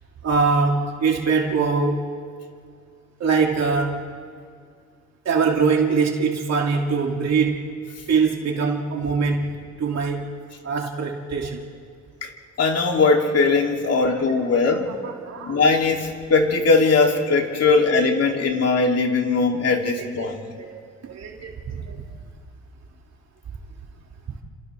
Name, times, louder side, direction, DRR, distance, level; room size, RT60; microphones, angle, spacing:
voice 1, 0.2-2.1 3.2-4.1 5.2-7.7 8.1-9.5 9.8-10.3 10.6-11.6 13.9-14.0 14.7-14.8 15.0-15.6 20.0-20.3 20.6-22.0 24.3-24.4, right 5 dB, 60° right, 0 dB, 2.8 m, -23 dB
voice 2, 12.6-14.9 15.4-20.4, left 4 dB, 55° left, 1 dB, 3.2 m, -20 dB
30.0 x 27.0 x 3.6 m, 2.1 s
cardioid pair, 90°, 30 cm